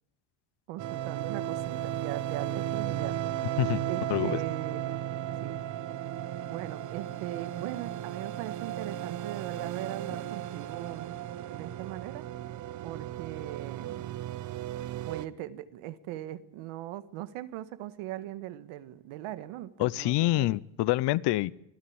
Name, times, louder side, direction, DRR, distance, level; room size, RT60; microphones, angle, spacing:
voice 1, 0.7-3.2 3.9-5.0 5.4-5.6 6.5-11.2 11.5-12.3 12.8-14.1 15.1-20.5, right 14 dB, 85° right, 13 dB, 1.7 m, -40 dB
sound 1, 0.8-15.3, right 11 dB, 40° right, 0.8 m, -35 dB
voice 2, 4.1-4.4 19.8-21.5, left 17 dB, 55° left, 21 dB, 0.7 m, -26 dB
24.5 x 16.0 x 8.8 m, 0.85 s
cardioid pair, 180°, 48 cm